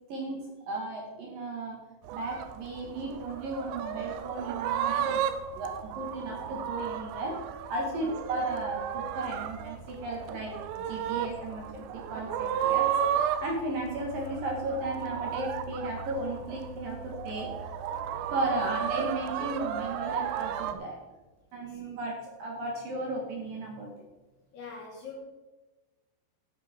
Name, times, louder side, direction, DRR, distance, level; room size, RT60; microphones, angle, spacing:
voice 1, 0.1-1.8 2.1-5.2 5.5-7.4 7.7-10.5 10.8-12.9 13.4-17.7 18.3-21.0 21.5-23.9, right 2 dB, 55° right, 0 dB, 2.9 m, -35 dB
sound 1, 2.1-20.7, right 9 dB, 85° right, 3.4 m, -34 dB
voice 2, 24.5-25.3, left 4 dB, 65° left, 1 dB, 2.9 m, -44 dB
13.5 x 8.3 x 4.5 m, 1.2 s
omnidirectional pair, 5.9 m